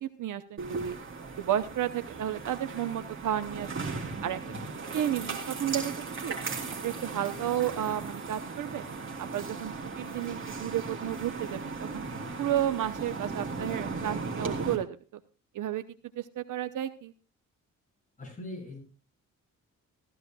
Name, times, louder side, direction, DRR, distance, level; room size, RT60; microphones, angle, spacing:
voice 1, 0.0-1.0 1.4-3.9 4.2-4.4 4.9-6.4 6.8-8.8 9.2-12.0 12.4-15.0 15.5-15.8 16.2-17.1, right 11 dB, 75° right, 10 dB, 0.9 m, -32 dB
sound 1, 0.6-14.8, right 4 dB, 40° right, 3.2 m, -37 dB
voice 2, 18.2-18.8, left 2 dB, 25° left, 0 dB, 7.4 m, -43 dB
15.5 x 15.0 x 2.3 m, 0.34 s
wide cardioid pair, 130°, 31 cm